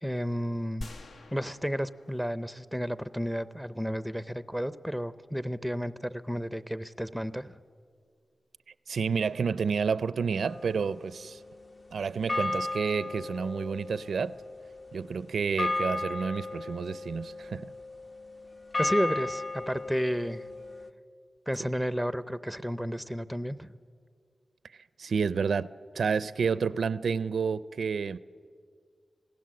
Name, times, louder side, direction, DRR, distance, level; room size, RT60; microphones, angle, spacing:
voice 1, 0.0-0.9 1.3-7.6 18.8-20.4 21.5-23.7, equal, ahead, 0.6 m, -32 dB
sound 1, 0.8-3.1, left 2 dB, 65° left, 0.9 m, -46 dB
voice 2, 8.9-11.4 11.9-14.4 14.9-17.7 25.0-25.7 25.9-28.2, right 5 dB, 85° right, 0.5 m, -30 dB
sound 2, 10.5-11.8 12.3-20.9, left 2 dB, 40° left, 0.9 m, -35 dB
27.0 x 17.5 x 7.6 m
wide cardioid pair, 115°, 0 cm